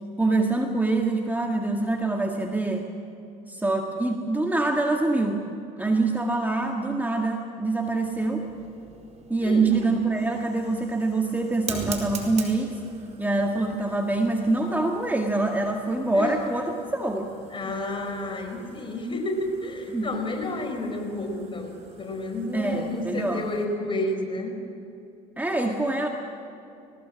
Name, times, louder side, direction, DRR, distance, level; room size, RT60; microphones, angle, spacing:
voice 1, 0.2-2.9 3.5-5.5 5.8-8.5 9.3-12.8 13.2-17.3 19.9-20.1 22.5-23.5 25.4-26.1, right 2 dB, 10° right, 2 dB, 1.9 m, -25 dB
Fire, 7.9-23.6, right 4 dB, 35° right, 4.5 m, -43 dB
voice 2, 9.4-9.8 16.1-16.3 17.5-24.5, left 2 dB, 30° left, 3 dB, 4.9 m, -30 dB
21.5 x 19.5 x 7.7 m, 2.6 s
hypercardioid pair, 70°, 18 cm